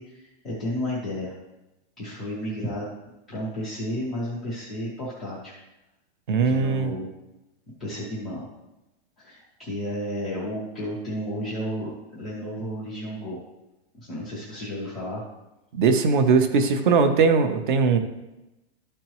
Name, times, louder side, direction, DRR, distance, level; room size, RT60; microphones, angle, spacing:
voice 1, 0.0-1.3 2.0-2.9 3.3-5.5 6.4-7.1 7.8-8.5 9.2-13.4 13.9-15.2, equal, ahead, -14 dB, 0.3 m, -32 dB
voice 2, 6.3-6.9 15.7-18.0, right 5 dB, 45° right, 7 dB, 0.8 m, -20 dB
12.5 x 4.5 x 3.0 m, 0.97 s
supercardioid pair, 175°, 33 cm